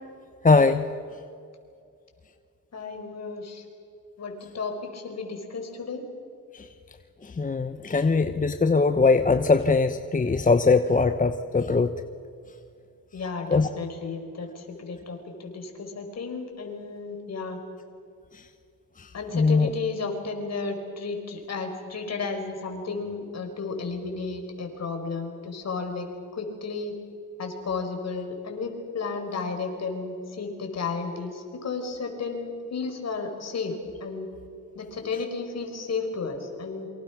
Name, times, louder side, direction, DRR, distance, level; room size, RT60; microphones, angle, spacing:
voice 1, 0.4-0.8 6.5-6.7 7.2-11.9 13.5-13.7 18.3-18.4 19.0-19.1 19.3-19.7, left 4 dB, 25° left, 9 dB, 1.0 m, -21 dB
voice 2, 2.7-3.6 4.2-6.0 13.1-17.6 19.1-26.1 26.3-27.0 27.4-33.7 34.0-34.3 34.7-36.9, left 4 dB, 50° left, 4 dB, 5.1 m, -33 dB
28.0 x 24.5 x 6.2 m, 2.4 s
cardioid pair, 95°, 33 cm